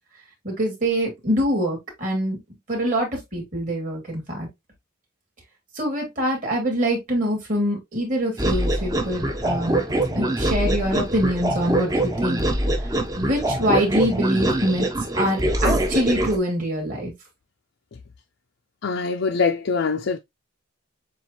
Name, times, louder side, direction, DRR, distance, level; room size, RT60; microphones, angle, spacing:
voice 1, 0.4-2.4 2.7-4.5 5.7-9.8 10.1-12.4 13.2-14.9 15.2-17.1, equal, 40° right, 2.5 m, -24 dB
sound 1, 8.4-16.4, right 1 dB, 15° right, 0.6 m, -24 dB
voice 2, 18.8-20.2, left 5 dB, 60° left, 0.4 m, -23 dB
7.2 x 2.5 x 2.9 m
head